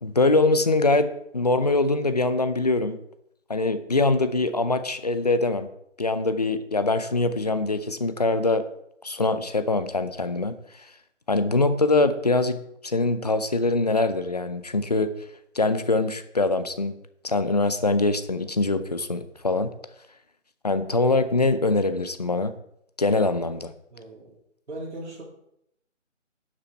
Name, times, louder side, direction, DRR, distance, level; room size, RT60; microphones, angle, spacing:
voice 1, 0.0-3.0 3.5-5.7 6.0-8.6 9.0-10.5 11.3-15.1 15.5-16.9 17.2-19.7 20.6-22.5 23.0-23.7, left 2 dB, 35° left, 11 dB, 0.6 m, -23 dB
voice 2, 23.9-24.3 24.7-25.2, right 1 dB, 65° right, -4 dB, 3.1 m, -38 dB
11.0 x 7.1 x 4.5 m, 0.76 s
figure-of-eight pair, 170°, 37 cm